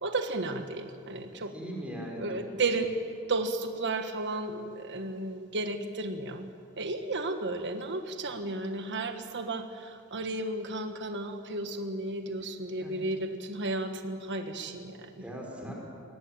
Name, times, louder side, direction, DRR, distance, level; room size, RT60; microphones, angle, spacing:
voice 1, 0.0-1.5 2.2-3.0 3.3-6.5 6.8-15.2, right 2 dB, 55° right, 6 dB, 1.4 m, -33 dB
voice 2, 1.5-2.5 12.8-12.9 15.2-15.7, equal, 5° right, -2 dB, 5.0 m, -39 dB
22.5 x 18.5 x 8.9 m, 2.3 s
head